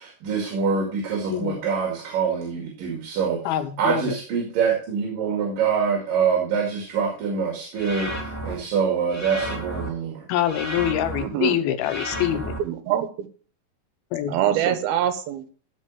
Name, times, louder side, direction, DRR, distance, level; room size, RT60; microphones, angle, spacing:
voice 1, 0.0-3.4 3.8-10.2, right 6 dB, 70° right, 0 dB, 3.8 m, -25 dB
voice 2, 3.5-4.2 10.3-12.5 14.1-14.4, left 11 dB, 85° left, 9 dB, 2.9 m, -25 dB
sound 1, 7.8-8.5 9.1-9.9 10.5-11.2 11.8-12.6, equal, 5° left, 1.4 m, -32 dB
voice 3, 11.2-11.6 12.6-13.3 14.3-15.6, right 10 dB, 85° right, 10 dB, 3.1 m, -24 dB
14.5 x 5.1 x 5.5 m, 0.40 s
omnidirectional pair, 4.2 m